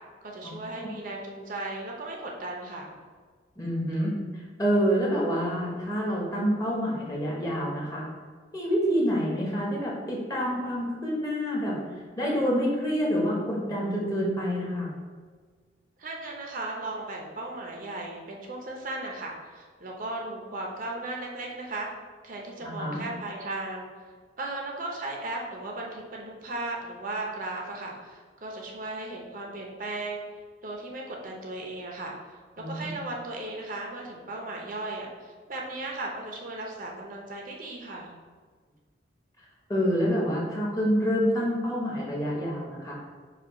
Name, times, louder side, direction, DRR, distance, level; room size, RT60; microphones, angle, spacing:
voice 1, 0.2-2.9 16.0-21.9 22.2-23.9 24.4-30.2 30.6-38.1, right 2 dB, 50° right, 0 dB, 0.6 m, -36 dB
voice 2, 3.6-8.1 8.5-11.8 12.2-14.9 22.6-23.0 32.6-32.9 39.7-43.0, equal, 20° left, -3 dB, 0.9 m, -27 dB
4.9 x 2.3 x 4.7 m, 1.5 s
head